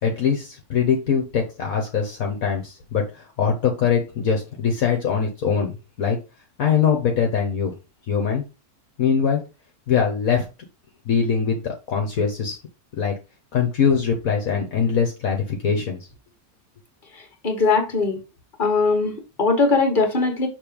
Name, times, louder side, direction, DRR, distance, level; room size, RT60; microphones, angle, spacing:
voice 1, 0.0-6.2 6.6-7.7 8.1-8.5 9.0-9.4 9.9-10.5 11.0-12.6 12.9-13.1 13.5-16.0, left 6 dB, 65° left, 2 dB, 1.5 m, -22 dB
voice 2, 17.4-18.2 18.6-20.5, left 4 dB, 30° left, 3 dB, 1.8 m, -20 dB
6.6 x 3.2 x 5.2 m, 0.28 s
omnidirectional pair, 1.7 m